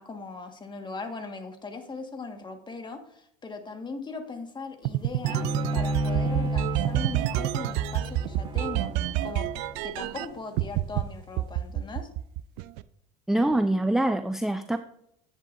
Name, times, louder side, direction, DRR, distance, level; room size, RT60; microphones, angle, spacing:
voice 1, 0.0-8.9 9.2-9.5 9.8-12.1, left 4 dB, 25° left, 5 dB, 1.7 m, -39 dB
sound 1, 4.8-10.3 10.6-11.0 11.4-12.8, right 15 dB, 60° right, 0.5 m, -28 dB
Bowed string instrument, 5.2-10.6, right 1 dB, 25° right, 1.5 m, -32 dB
voice 2, 13.3-14.8, right 1 dB, ahead, 10 dB, 0.5 m, -24 dB
10.5 x 8.4 x 2.6 m, 0.73 s
hypercardioid pair, 80°, 20 cm